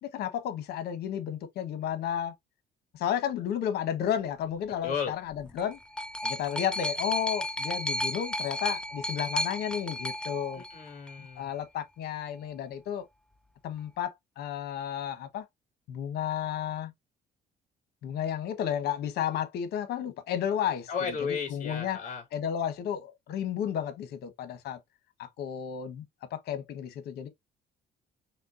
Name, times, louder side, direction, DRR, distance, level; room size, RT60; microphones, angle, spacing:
voice 1, 0.0-2.3 2.9-5.8 6.2-10.6 11.4-13.1 13.6-15.4 15.9-16.9 18.0-20.9 21.2-22.0 22.3-24.8 25.2-26.0 26.3-27.3, left 9 dB, 70° left, 1.1 m, -32 dB
voice 2, 4.8-5.1 10.5-11.5 20.9-22.2, left 6 dB, 50° left, 2.8 m, -34 dB
sound 1, 5.3-11.3 12.2-12.3, left 1 dB, 5° left, 0.4 m, -34 dB
4.3 x 3.4 x 2.5 m
cardioid pair, 110°, 17 cm